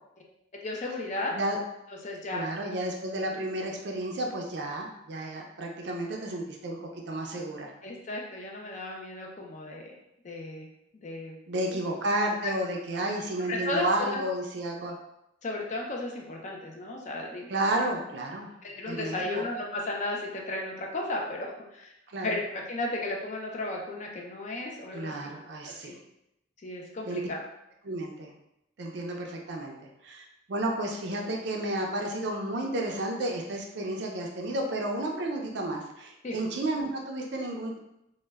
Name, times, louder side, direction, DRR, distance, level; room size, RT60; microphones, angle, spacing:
voice 1, 0.6-1.3 2.0-2.4 7.8-9.9 10.2-10.7 11.0-11.4 11.7-11.8 13.5-14.2 15.4-17.5 18.6-21.9 22.2-25.3 25.6-25.9 26.6-27.4 36.2-36.4, left 2 dB, 35° left, -1 dB, 0.4 m, -34 dB
voice 2, 2.3-7.7 11.5-15.0 17.5-18.5 18.9-19.4 22.1-22.4 24.9-26.0 27.0-27.3 27.8-28.3 28.8-29.8 30.0-37.8, right 1 dB, 55° right, 1 dB, 0.4 m, -32 dB
2.1 x 2.1 x 3.3 m, 0.83 s
head